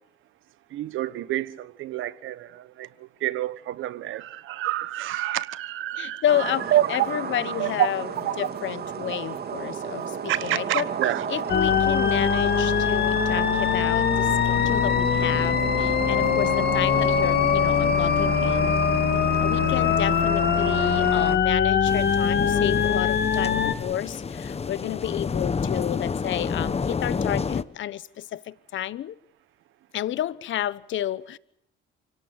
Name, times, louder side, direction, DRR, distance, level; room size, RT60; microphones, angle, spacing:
voice 1, 0.7-6.2 6.7-6.9 7.6-7.9 8.2-8.3 10.3-11.3, right 13 dB, 85° right, 1.2 m, -27 dB
voice 2, 6.0-8.1 8.4-10.9 11.3-18.8 19.4-29.2 29.9-31.4, left 12 dB, 75° left, 1.0 m, -31 dB
sound 1, 6.3-21.4, right 7 dB, 55° right, 2.2 m, -32 dB
sound 2, 11.5-23.7, left 8 dB, 55° left, 2.3 m, -22 dB
sound 3, 21.9-27.6, left 5 dB, 30° left, 1.2 m, -29 dB
29.0 x 17.5 x 8.1 m
cardioid pair, 90°, 20 cm